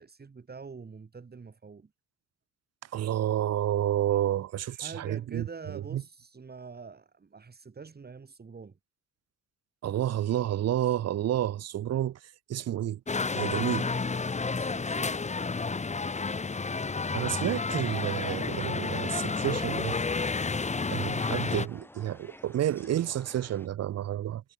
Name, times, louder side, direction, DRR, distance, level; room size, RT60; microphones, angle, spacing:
voice 1, 0.0-1.9 4.7-8.8 14.5-15.3, right 5 dB, 30° right, 3.8 m, -45 dB
voice 2, 2.9-5.5 5.7-6.0 9.8-12.2 12.5-13.0 13.3-13.9 17.1-20.0 20.9-24.4, right 11 dB, 55° right, 0.9 m, -30 dB
sound 1, 13.1-21.7, left 4 dB, 25° left, 1.6 m, -31 dB
sound 2, 17.9-23.7, left 1 dB, 5° left, 6.4 m, -52 dB
cardioid pair, 90°, 30 cm